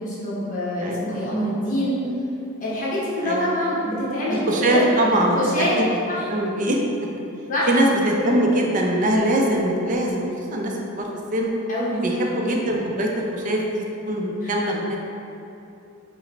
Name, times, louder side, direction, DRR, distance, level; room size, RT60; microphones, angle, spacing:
voice 1, 0.0-2.0 2.6-4.8 5.2-5.8 6.1-6.3 7.5-7.9 8.2-8.4 11.7-12.0 14.4-14.5, left 1 dB, 40° left, -7 dB, 0.8 m, -25 dB
voice 2, 0.8-1.1 3.2-3.5 4.3-5.4 5.8-5.9 6.3-6.8 7.7-11.5 12.0-15.0, right 1 dB, 40° right, 0 dB, 0.4 m, -22 dB
4.6 x 2.0 x 3.3 m, 2.8 s
head